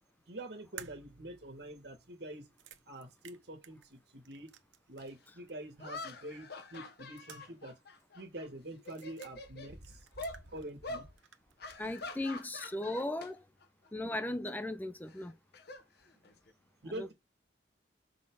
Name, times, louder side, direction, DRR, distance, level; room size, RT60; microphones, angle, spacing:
voice 1, 0.3-2.5 2.9-4.5 4.9-7.7 8.1-10.1 10.5-11.1 16.8-17.1, right 1 dB, 60° right, 1.8 m, -46 dB
sound 1, 0.8-5.2 5.5-5.6 6.7-7.7 8.0-8.1 8.8-9.3 9.8-10.9 11.2-12.1, right 8 dB, 85° right, 0.9 m, -55 dB
sound 2, 5.0-5.1 5.8-8.5 8.8-9.7 10.2-10.4 10.8-11.1 11.6-13.3 13.6-13.9 15.1-16.5, left 2 dB, 55° left, 1.0 m, -45 dB
voice 2, 11.8-13.5 13.9-15.3 17.0-17.1, left 1 dB, 10° left, 0.5 m, -37 dB
6.2 x 3.6 x 4.6 m
head